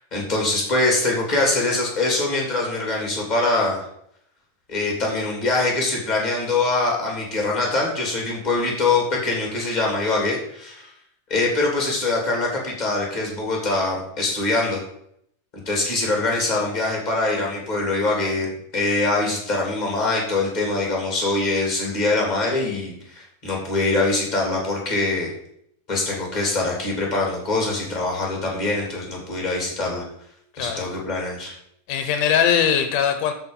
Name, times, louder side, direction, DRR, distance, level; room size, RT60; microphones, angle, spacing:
voice 1, 0.0-3.8 4.7-10.9 11.3-14.8 15.5-25.3 25.9-30.0 30.6-31.5, left 2 dB, 15° left, -1 dB, 2.9 m, -23 dB
voice 2, 30.5-30.9 31.9-33.3, left 8 dB, 80° left, 7 dB, 2.3 m, -20 dB
13.0 x 5.3 x 5.3 m, 0.71 s
omnidirectional pair, 3.7 m